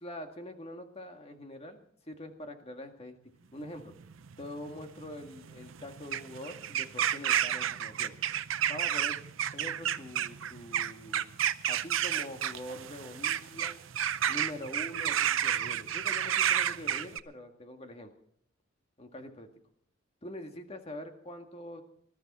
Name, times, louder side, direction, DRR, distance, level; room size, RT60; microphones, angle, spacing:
voice 1, 0.0-3.2 3.5-3.9 4.4-8.1 8.7-9.2 9.5-11.3 11.7-13.8 14.3-18.1 19.0-19.5 20.2-21.8, left 1 dB, 30° left, 5 dB, 1.8 m, -44 dB
sound 1, 3.8-17.2, right 10 dB, 75° right, 0.6 m, -31 dB
20.5 x 13.0 x 4.2 m, 0.67 s
head